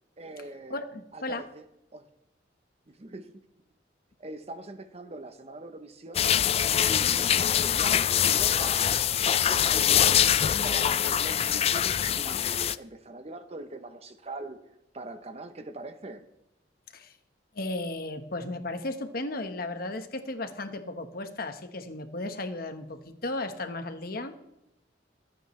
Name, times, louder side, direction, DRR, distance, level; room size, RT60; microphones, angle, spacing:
voice 1, 0.2-0.8 1.1-1.7 1.9-2.1 2.9-3.4 4.2-6.3 6.8-10.3 10.6-16.2, right 2 dB, 35° right, 0.8 m, -42 dB
voice 2, 0.7-1.5 16.9-17.1 17.5-24.3, left 2 dB, 50° left, 1.2 m, -35 dB
sound 1, 6.1-12.7, left 9 dB, 35° left, 0.3 m, -24 dB
25.0 x 9.0 x 3.2 m
head